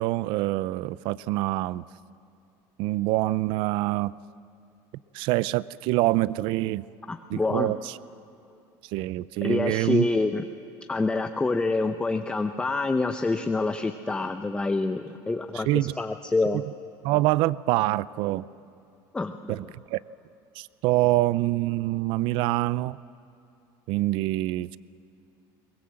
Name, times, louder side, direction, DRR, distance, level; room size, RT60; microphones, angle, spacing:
voice 1, 0.0-1.8 2.8-4.1 5.1-6.9 7.3-8.0 8.9-10.1 15.5-15.9 16.5-16.6 17.0-18.5 19.5-19.7 19.9-20.0 20.6-23.0 23.9-24.8, right 17 dB, 65° right, 20 dB, 0.4 m, -25 dB
voice 2, 7.1-7.7 9.4-10.4 10.9-16.6 19.1-19.6, left 3 dB, 10° left, 7 dB, 0.7 m, -27 dB
22.5 x 20.0 x 7.7 m, 2.7 s
cardioid pair, 135°, 9 cm